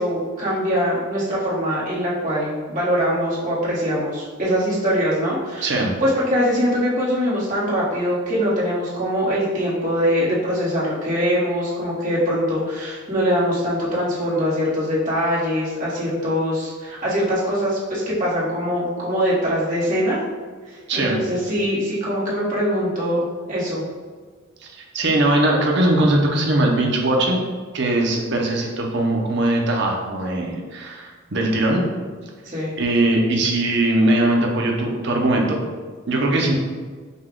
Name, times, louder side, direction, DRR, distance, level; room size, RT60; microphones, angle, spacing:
voice 1, 0.0-20.2 20.7-23.8 32.4-32.7, equal, 40° right, -7 dB, 1.3 m, -23 dB
voice 2, 5.6-6.0 20.9-21.2 24.7-27.4 27.7-31.8 32.8-35.6 36.1-36.5, right 1 dB, 60° right, 0 dB, 0.7 m, -20 dB
5.4 x 2.3 x 3.7 m, 1.5 s
head